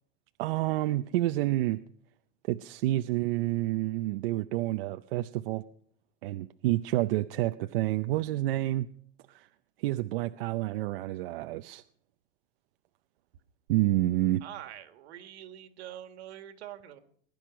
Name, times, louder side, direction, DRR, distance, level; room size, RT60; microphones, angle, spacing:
voice 1, 0.4-1.8 2.4-5.6 6.2-8.9 9.3-9.5 9.8-11.8 13.7-14.4, right 16 dB, 55° right, 0.6 m, -29 dB
voice 2, 14.4-17.0, right 11 dB, 75° right, 2.0 m, -45 dB
20.0 x 11.0 x 6.1 m
supercardioid pair, 155°, 33 cm